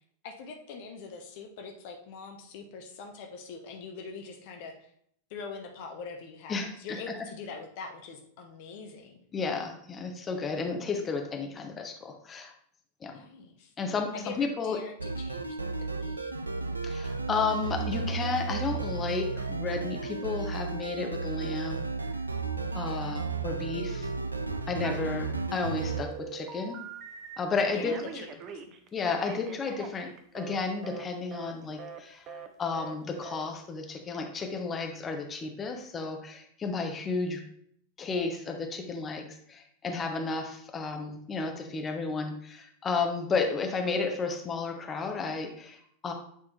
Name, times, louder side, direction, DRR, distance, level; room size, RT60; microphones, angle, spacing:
voice 1, 0.2-4.8 5.3-9.2 13.1-13.7 14.1-16.3 22.8-23.3 27.7-28.3 28.5-28.7, left 4 dB, 50° left, 3 dB, 0.9 m, -43 dB
voice 2, 9.3-12.5 13.0-13.2 13.8-14.8 16.8-21.8 22.7-24.1 24.7-26.8 27.4-28.0 28.9-32.3 32.6-37.4 38.0-46.1, left 4 dB, 20° left, 3 dB, 0.9 m, -32 dB
sound 1, 15.0-26.0, right 4 dB, 80° right, 0.4 m, -33 dB
Telephone, 24.8-25.4 25.8-27.4 27.8-30.6 30.8-31.1 31.3-31.5 31.8-32.0 32.3-32.5 32.7-33.0 33.2-33.4, right 6 dB, 35° right, 0.6 m, -43 dB
8.5 x 3.6 x 3.2 m, 0.66 s
figure-of-eight pair, 90°, 0 cm